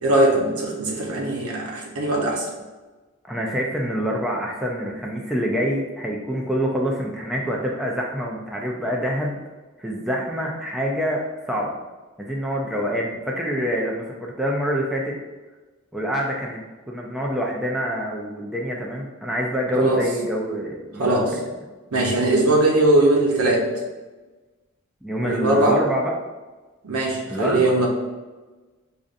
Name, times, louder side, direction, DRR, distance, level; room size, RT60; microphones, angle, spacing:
voice 1, 0.0-2.5 19.7-20.0 21.0-21.3 21.9-23.7 25.2-25.8 26.8-27.9, right 2 dB, 90° right, -1 dB, 0.8 m, -20 dB
voice 2, 3.2-9.4 9.8-11.8 12.2-15.2 15.9-21.2 25.0-26.1 27.3-27.6, equal, ahead, -2 dB, 0.3 m, -26 dB
4.9 x 2.5 x 2.5 m, 1.2 s
head